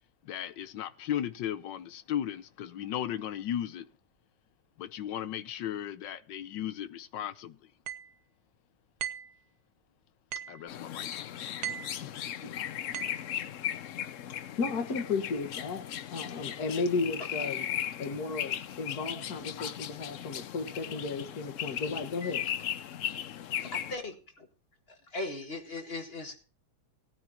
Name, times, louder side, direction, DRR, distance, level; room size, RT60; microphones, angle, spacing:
voice 1, 0.2-3.9 4.8-7.6 10.5-11.1, left 10 dB, 70° left, 1.4 m, -36 dB
sound 1, 7.9-8.1 9.0-9.3 10.3-10.6 11.6-12.0 12.9-13.2, right 11 dB, 60° right, 1.3 m, -37 dB
sound 2, 10.7-24.0, left 10 dB, 85° left, 0.6 m, -37 dB
voice 2, 14.6-17.7 18.0-22.4, left 4 dB, 55° left, 2.1 m, -34 dB
voice 3, 22.2-22.5 23.6-24.5 24.9-26.3, left 2 dB, 30° left, 1.9 m, -39 dB
18.5 x 9.4 x 2.9 m
omnidirectional pair, 2.1 m